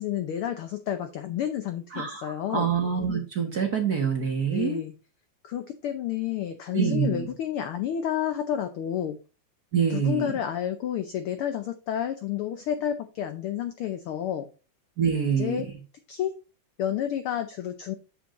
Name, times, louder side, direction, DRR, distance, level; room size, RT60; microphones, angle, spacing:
voice 1, 0.0-2.7 4.5-4.9 5.4-9.2 9.9-14.5 15.4-15.7 16.1-16.4 16.8-17.9, left 10 dB, 85° left, 8 dB, 1.2 m, -30 dB
voice 2, 1.9-4.8 6.7-7.3 9.7-10.3 15.0-15.6, right 7 dB, 45° right, 2 dB, 1.3 m, -26 dB
8.4 x 7.3 x 2.5 m, 0.33 s
omnidirectional pair, 3.3 m